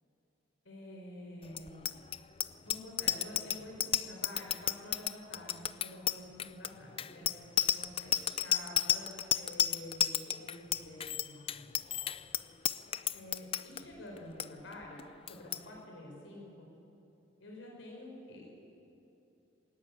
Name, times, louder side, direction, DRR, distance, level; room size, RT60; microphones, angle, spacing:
voice 1, 0.6-1.9 2.6-7.5 7.7-8.2 8.4-11.8 13.1-16.7 17.4-18.5, left 1 dB, 80° left, -1 dB, 4.4 m, -48 dB
Bicycle bell, 1.5-13.8 14.2-14.5 14.7-15.0 15.3-15.6, left 10 dB, 30° left, 0.4 m, -32 dB
20.0 x 19.0 x 8.4 m, 3.0 s
head